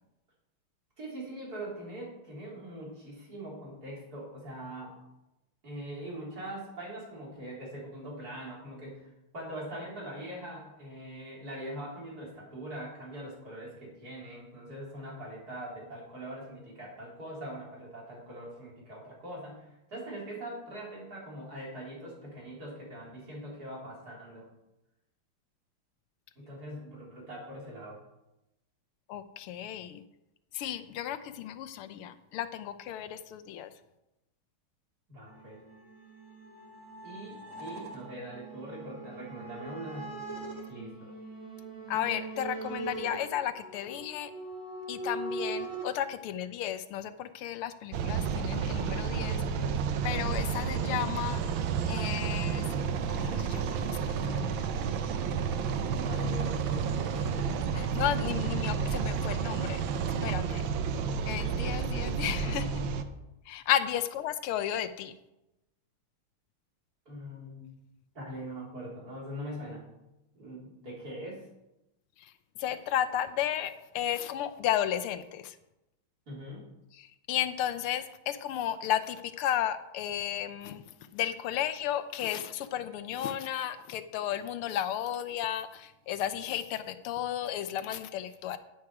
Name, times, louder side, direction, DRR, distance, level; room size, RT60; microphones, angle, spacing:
voice 1, 1.0-5.0 5.6-24.5 26.4-28.0 35.1-35.6 37.0-40.1 40.7-41.1 55.9-57.5 67.1-67.7 68.1-69.8 70.3-71.4 76.3-76.7, right 1 dB, 45° right, -4 dB, 4.4 m, -42 dB
voice 2, 29.1-30.0 30.5-33.7 41.9-44.3 44.9-49.4 50.0-51.4 51.9-52.6 53.1-54.6 57.7-59.8 60.2-60.6 61.3-62.7 63.5-65.1 72.6-75.5 77.0-80.8 81.1-88.6, left 11 dB, 90° left, 11 dB, 1.7 m, -33 dB
sound 1, 35.3-45.9, right 3 dB, 85° right, 3.2 m, -41 dB
sound 2, 47.9-63.0, right 6 dB, 70° right, 1.5 m, -31 dB
11.0 x 9.5 x 4.8 m, 0.93 s
omnidirectional pair, 2.4 m